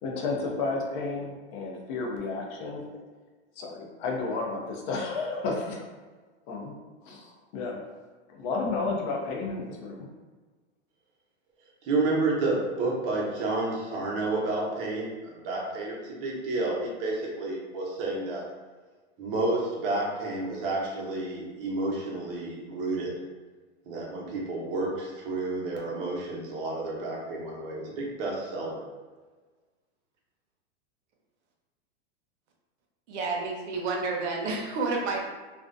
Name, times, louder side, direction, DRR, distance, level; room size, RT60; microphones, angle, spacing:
voice 1, 0.0-3.0 3.6-5.9 6.5-6.8 7.0-7.8 8.3-10.1, left 3 dB, 45° left, 0 dB, 0.5 m, -32 dB
voice 2, 11.8-18.4 19.2-23.1 23.9-28.8, right 2 dB, 50° right, -2 dB, 0.8 m, -30 dB
voice 3, 33.1-35.2, right 3 dB, 80° right, 0 dB, 0.7 m, -30 dB
2.4 x 2.1 x 2.5 m, 1.3 s
supercardioid pair, 135°, 34 cm